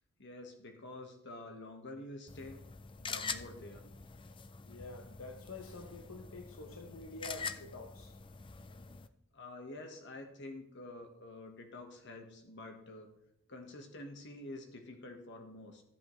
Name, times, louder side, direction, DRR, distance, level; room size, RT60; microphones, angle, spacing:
voice 1, 0.2-2.6 3.0-3.9 9.3-13.1 13.5-15.8, left 2 dB, 60° left, 4 dB, 1.5 m, -48 dB
sound 1, 2.3-9.1, left 5 dB, 25° left, 0.4 m, -45 dB
voice 2, 4.6-8.1, left 2 dB, 85° left, 4 dB, 1.0 m, -48 dB
13.0 x 8.1 x 3.2 m, 0.80 s
head